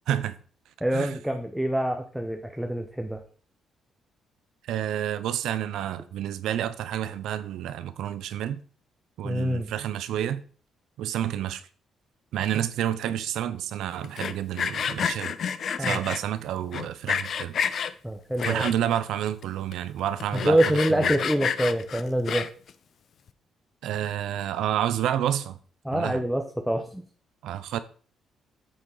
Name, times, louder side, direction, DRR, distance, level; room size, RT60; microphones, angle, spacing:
voice 1, 0.8-3.2 9.2-9.7 15.8-16.0 18.0-18.6 20.3-22.4 25.8-27.0, right 1 dB, 5° right, 1.0 m, -26 dB
voice 2, 4.7-8.6 9.2-10.4 11.0-11.6 12.3-15.4 15.8-17.6 18.4-21.1 23.8-25.6 25.9-26.2 27.4-27.8, right 11 dB, 80° right, 0.7 m, -29 dB
Sawing, 14.0-16.2 16.7-17.9 18.4-19.0 19.4-19.5 19.7-19.8 20.2-22.7, left 7 dB, 55° left, 0.6 m, -29 dB
8.7 x 6.4 x 4.0 m
cardioid pair, 90°, 0 cm